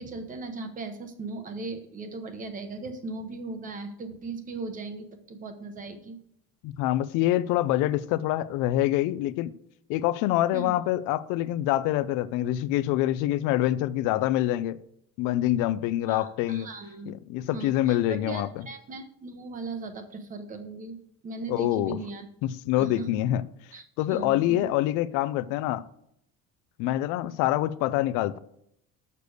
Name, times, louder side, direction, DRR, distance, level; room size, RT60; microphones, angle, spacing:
voice 1, 0.0-6.2 10.5-10.7 16.1-17.1 17.5-21.0 21.2-22.3 22.8-23.1 23.7-24.7, right 3 dB, 25° right, 1.0 m, -38 dB
voice 2, 6.6-9.5 9.9-14.8 15.2-16.7 17.1-18.5 21.5-22.0 22.4-23.4 24.0-25.8 26.8-28.4, left 14 dB, 65° left, 0.5 m, -26 dB
6.8 x 6.8 x 6.4 m
cardioid pair, 175°, 34 cm